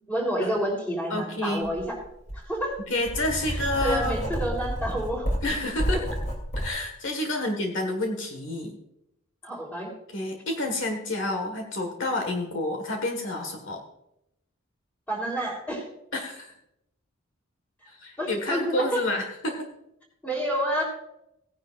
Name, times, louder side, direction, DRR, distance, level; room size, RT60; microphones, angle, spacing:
voice 1, 0.1-2.0 2.3-2.8 3.4-5.3 5.9-6.1 7.3-7.5 9.4-9.9 15.1-15.9 18.2-19.0 20.2-20.8, right 1 dB, 5° left, -1 dB, 3.6 m, -29 dB
voice 2, 1.1-1.7 2.9-4.2 5.4-6.0 6.6-8.8 10.1-13.8 16.1-16.5 17.9-19.7, left 1 dB, 60° left, 3 dB, 1.7 m, -29 dB
Writing, 1.6-1.8 2.3-6.7, equal, 35° left, 3.0 m, -30 dB
17.5 x 10.5 x 2.5 m, 0.81 s
head